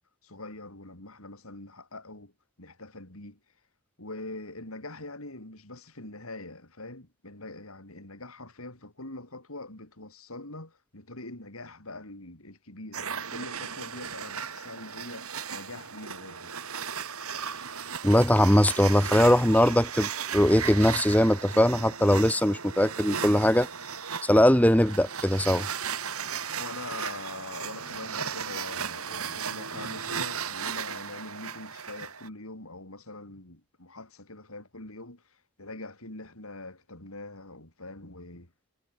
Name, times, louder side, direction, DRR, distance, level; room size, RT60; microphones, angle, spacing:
voice 1, 0.2-2.3 2.6-3.4 4.0-16.5 26.5-38.5, left 2 dB, 75° left, 5.3 m, -43 dB
sound 1, 12.9-32.3, right 7 dB, 80° right, 5.2 m, -36 dB
voice 2, 18.0-23.7 24.2-25.7, left 1 dB, 5° left, 1.1 m, -21 dB
head